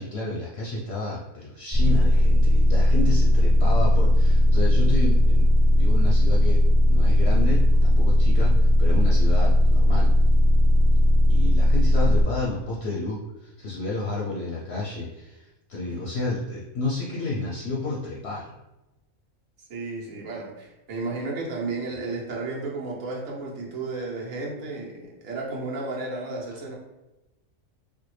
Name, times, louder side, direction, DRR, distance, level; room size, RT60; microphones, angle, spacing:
voice 1, 0.0-5.4 5.7-6.6 6.9-10.1 11.3-18.5, left 3 dB, 60° left, -3 dB, 0.7 m, -31 dB
sound 1, 1.7-12.2, left 1 dB, 50° right, 1.4 m, -17 dB
voice 2, 19.7-26.8, right 3 dB, 70° right, -3 dB, 1.3 m, -33 dB
4.3 x 2.2 x 3.1 m, 0.98 s
omnidirectional pair, 1.5 m